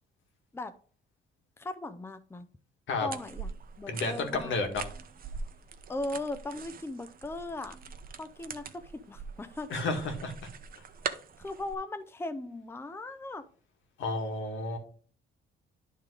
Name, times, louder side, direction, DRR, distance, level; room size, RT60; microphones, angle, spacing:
voice 1, 1.6-2.5 3.0-3.5 3.8-4.6 5.9-7.8 8.2-9.7 11.4-13.4, left 2 dB, 10° left, 10 dB, 0.6 m, -38 dB
sound 1, 3.1-11.7, right 6 dB, 45° right, 0.8 m, -43 dB
voice 2, 3.9-4.9 9.7-10.3 14.0-14.8, left 3 dB, 75° left, 4 dB, 2.0 m, -31 dB
10.0 x 3.7 x 4.9 m, 0.42 s
cardioid pair, 90°, 20 cm